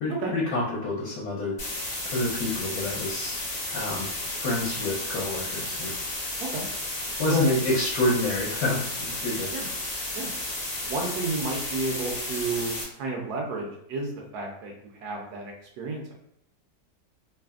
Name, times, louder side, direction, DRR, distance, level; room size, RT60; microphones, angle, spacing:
voice 1, 0.0-3.4 3.7-4.1 4.4-5.9 7.2-9.5, left 2 dB, 70° left, -7 dB, 1.2 m, -28 dB
sound 1, 1.6-12.8, left 2 dB, 40° left, 0.8 m, -33 dB
voice 2, 10.9-14.7 15.0-16.1, right 3 dB, 70° right, 0 dB, 1.1 m, -31 dB
3.2 x 2.0 x 2.3 m, 0.74 s
omnidirectional pair, 1.9 m